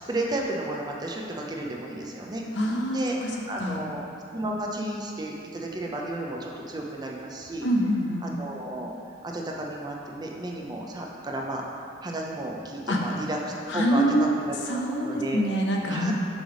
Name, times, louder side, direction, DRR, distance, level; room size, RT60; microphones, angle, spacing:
voice 1, 0.1-2.4 2.9-3.2 3.5-4.1 4.3-7.7 8.2-8.9 9.2-11.6 12.0-13.4 13.7-15.4 15.9-16.1, right 1 dB, 20° right, -1 dB, 0.5 m, -33 dB
voice 2, 2.6-3.3 3.6-3.9 7.6-8.3 12.9-13.0 13.7-14.3 14.7-16.1, equal, 70° left, -1 dB, 0.7 m, -25 dB
6.1 x 3.4 x 5.0 m, 2.6 s
head